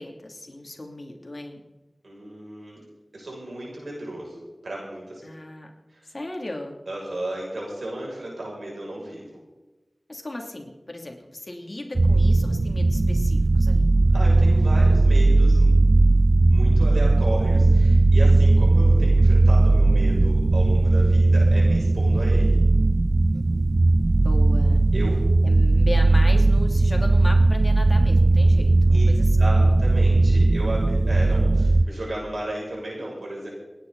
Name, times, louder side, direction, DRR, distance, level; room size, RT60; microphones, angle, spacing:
voice 1, 0.0-1.6 5.2-5.7 6.0-6.8 10.1-13.9 24.2-24.8 25.4-29.5, left 1 dB, 50° left, 2 dB, 2.8 m, -36 dB
voice 2, 2.0-2.8 3.1-5.2 5.9-6.0 6.9-9.4 14.1-15.8 16.5-22.6 24.9-25.2 28.9-29.1 29.4-33.5, right 1 dB, 90° right, -3 dB, 6.6 m, -34 dB
sound 1, 12.0-31.8, right 2 dB, 55° right, 0.6 m, -18 dB
29.0 x 10.0 x 4.0 m, 1.1 s
wide cardioid pair, 40°, 0 cm